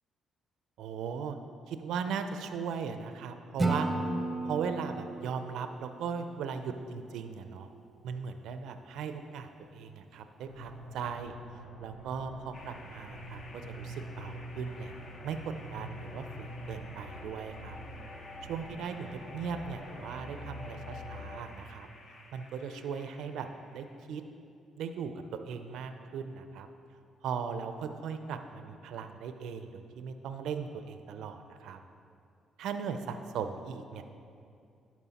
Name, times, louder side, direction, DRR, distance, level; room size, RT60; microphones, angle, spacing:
voice 1, 0.8-1.4 1.7-3.9 4.4-7.7 8.0-14.9 15.2-17.8 18.4-21.9 22.3-24.2 24.8-26.7 27.2-31.8 32.6-34.0, right 6 dB, 85° right, 8 dB, 0.4 m, -38 dB
Acoustic guitar / Strum, 3.6-6.7, right 2 dB, 15° right, 0.7 m, -34 dB
sound 1, 10.5-21.4, equal, 65° left, 1.7 m, -45 dB
sound 2, 12.5-24.0, left 2 dB, 50° left, 0.8 m, -53 dB
11.5 x 4.5 x 4.1 m, 2.5 s
cardioid pair, 90°, 0 cm